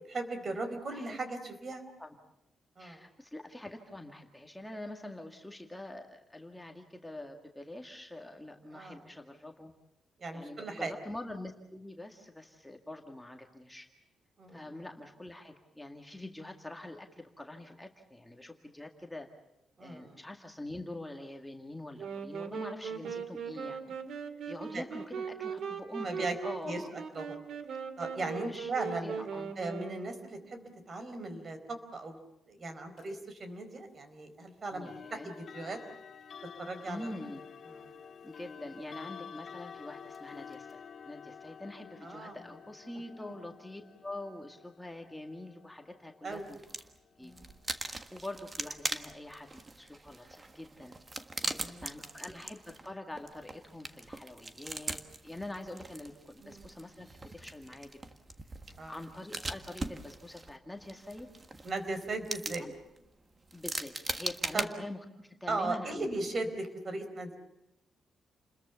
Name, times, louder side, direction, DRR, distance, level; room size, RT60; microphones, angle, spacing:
voice 1, 0.1-1.8 2.8-3.0 8.7-9.0 10.2-10.9 14.4-14.6 19.8-20.2 24.7-24.8 26.0-26.4 26.6-26.8 27.1-27.4 28.0-29.2 29.6-32.2 32.5-35.8 36.6-37.1 37.7-37.9 42.0-42.4 46.2-46.5 47.2-47.5 51.4-51.8 56.4-56.6 58.8-58.9 61.6-62.7 64.5-64.7 65.5-67.4, right 2 dB, 40° right, 8 dB, 4.4 m, -38 dB
voice 2, 2.8-9.7 10.3-13.9 14.5-19.3 19.8-23.8 24.5-26.9 28.4-28.7 29.0-29.5 34.7-35.3 36.8-37.4 38.2-46.6 47.2-47.3 48.1-50.9 51.8-55.0 55.2-57.9 58.9-61.3 62.6-62.7 63.5-66.2, left 1 dB, 5° left, 3 dB, 2.0 m, -45 dB
sound 1, 22.0-30.4, right 6 dB, 70° right, 2.1 m, -39 dB
sound 2, 33.0-33.2 34.9-47.7, left 6 dB, 50° left, 1.7 m, -50 dB
sound 3, 46.3-47.0 47.3-64.7, right 2 dB, 25° right, 1.5 m, -41 dB
29.5 x 21.5 x 7.0 m, 0.88 s
cardioid pair, 135°, 0 cm